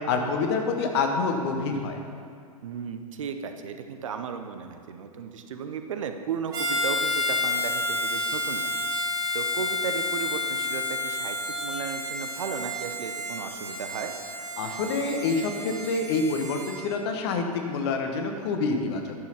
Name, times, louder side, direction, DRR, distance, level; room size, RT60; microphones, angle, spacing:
voice 1, 0.1-2.0 14.6-19.1, left 4 dB, 40° left, 4 dB, 1.2 m, -27 dB
voice 2, 2.6-8.7 9.3-14.1, right 7 dB, 55° right, 7 dB, 0.8 m, -35 dB
Harmonica, 6.5-16.8, left 1 dB, 20° right, 1.4 m, -30 dB
11.0 x 6.3 x 5.6 m, 2.2 s
figure-of-eight pair, 105°, 20 cm